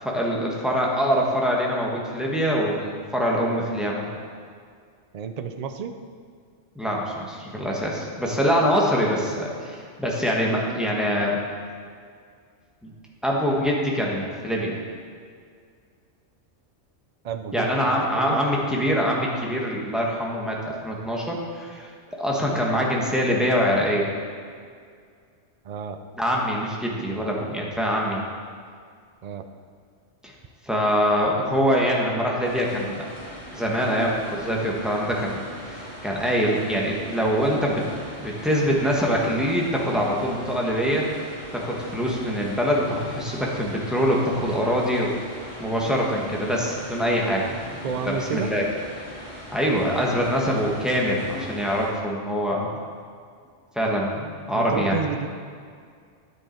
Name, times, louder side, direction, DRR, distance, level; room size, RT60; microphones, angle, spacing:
voice 1, 0.0-4.1 6.7-11.4 13.2-14.8 17.5-21.9 22.2-24.1 26.2-28.2 30.6-33.1 33.5-37.8 38.2-41.1 41.5-45.1 45.6-47.8 48.1-48.6 49.5-52.7 53.7-55.0, equal, ahead, -3 dB, 1.3 m, -24 dB
voice 2, 5.1-5.9 17.2-18.4 25.6-26.0 29.2-29.4 47.8-48.5 54.5-55.3, right 6 dB, 50° right, 8 dB, 0.5 m, -31 dB
sound 1, 32.4-51.9, equal, 25° right, 2.9 m, -40 dB
9.9 x 7.6 x 4.5 m, 2.1 s
omnidirectional pair, 1.2 m